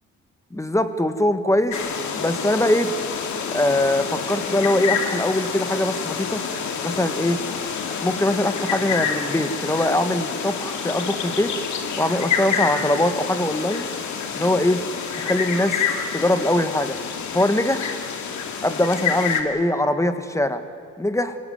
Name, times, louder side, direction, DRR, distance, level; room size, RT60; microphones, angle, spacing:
voice 1, 0.5-1.8 2.2-2.9 3.5-6.4 6.8-7.4 8.0-11.5 12.0-13.9 14.3-14.8 15.2-15.8 16.1-17.0 17.3-17.9 18.6-20.6 21.0-21.4, left 1 dB, 10° left, 9 dB, 1.6 m, -22 dB
sound 1, 1.7-19.4, left 7 dB, 70° left, 2.5 m, -28 dB
sound 2, 2.3-17.2, left 3 dB, 45° left, 4.8 m, -47 dB
25.5 x 17.0 x 9.4 m, 2.1 s
cardioid pair, 90°, 30 cm